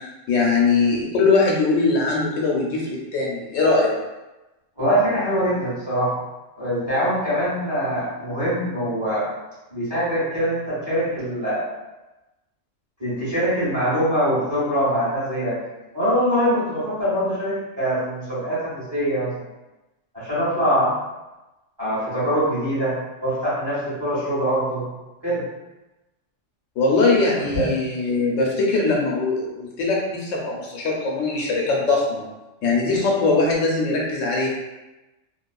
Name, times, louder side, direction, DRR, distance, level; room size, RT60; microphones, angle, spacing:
voice 1, 0.3-4.0 26.8-32.3 32.6-34.5, left 3 dB, 80° left, -2 dB, 1.0 m, -21 dB
voice 2, 4.8-6.2 6.6-9.3 9.7-11.7 13.0-15.6 15.9-19.3 20.1-21.0 21.8-23.0 23.2-24.8 25.2-25.4 27.5-27.7, equal, 20° right, -12 dB, 1.3 m, -23 dB
2.9 x 2.3 x 2.2 m, 1.1 s
omnidirectional pair, 1.3 m